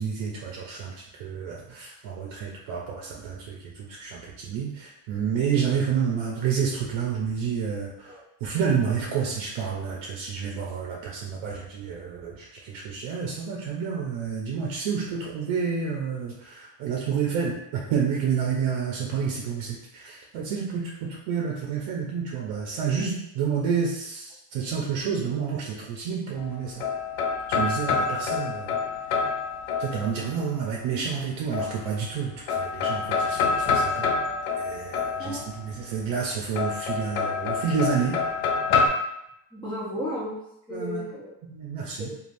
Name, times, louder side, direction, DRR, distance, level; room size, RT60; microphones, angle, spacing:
voice 1, 0.0-26.8 27.5-28.8 29.8-34.1 34.6-38.2 40.7-41.1 41.4-42.1, right 6 dB, 70° right, -2 dB, 0.6 m, -29 dB
sound 1, 26.4-30.4 31.5-32.2 32.5-35.7 36.6-38.9, left 5 dB, 80° left, 0.6 m, -27 dB
voice 2, 39.5-40.3 40.7-41.4 42.0-42.1, left 1 dB, 10° left, -10 dB, 0.4 m, -34 dB
3.2 x 2.4 x 2.5 m, 0.82 s
cardioid pair, 160°, 48 cm